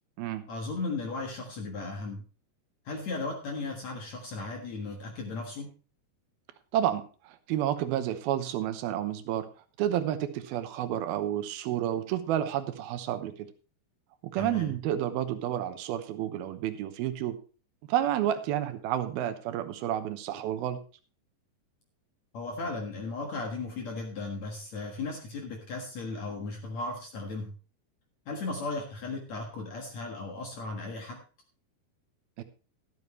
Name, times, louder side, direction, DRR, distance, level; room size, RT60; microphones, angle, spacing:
voice 1, 0.5-2.2 2.9-5.7 14.3-14.7 22.3-27.5 28.3-31.2, left 3 dB, 55° left, 2 dB, 2.4 m, -36 dB
voice 2, 6.7-9.5 9.8-13.5 14.3-17.4 17.9-20.8 32.4-32.5, right 11 dB, 80° right, 10 dB, 2.8 m, -30 dB
13.0 x 12.5 x 3.2 m, 0.36 s
omnidirectional pair, 4.4 m